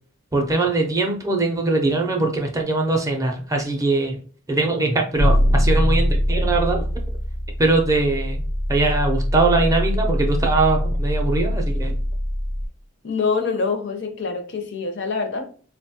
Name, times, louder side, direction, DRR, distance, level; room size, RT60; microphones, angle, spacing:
voice 1, 0.3-4.2 4.5-6.8 7.6-12.0, right 3 dB, 15° right, 1 dB, 0.4 m, -21 dB
sound 1, 5.2-12.7, equal, 80° left, 1.0 m, -22 dB
voice 2, 13.0-15.5, left 4 dB, 50° left, 6 dB, 0.5 m, -25 dB
3.9 x 2.1 x 2.7 m, 0.42 s
head